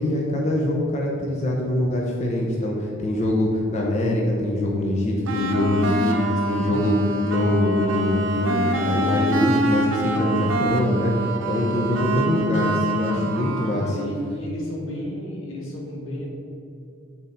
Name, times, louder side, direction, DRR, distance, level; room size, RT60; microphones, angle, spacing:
voice 1, 0.0-11.1 11.5-14.0, left 1 dB, 35° left, -1 dB, 0.7 m, -23 dB
sound 1, 5.3-14.1, right 1 dB, 75° right, 0.7 m, -25 dB
voice 2, 6.6-7.0 11.9-12.4 13.8-16.3, left 1 dB, 80° left, -2 dB, 1.5 m, -33 dB
6.3 x 4.2 x 5.1 m, 2.6 s
head